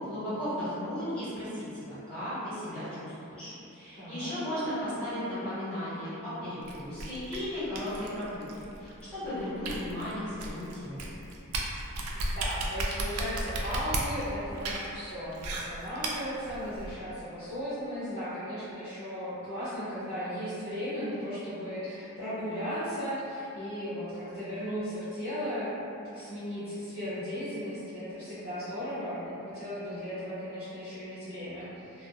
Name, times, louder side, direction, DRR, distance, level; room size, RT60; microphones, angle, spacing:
voice 1, 0.0-8.5 8.8-11.0, left 1 dB, 5° left, -15 dB, 1.0 m, -35 dB
voice 2, 4.0-4.3 12.1-32.1, equal, 25° left, -15 dB, 0.7 m, -36 dB
sound 1, 6.7-17.0, right 2 dB, 85° right, 0.3 m, -35 dB
2.3 x 2.0 x 2.8 m, 2.8 s
head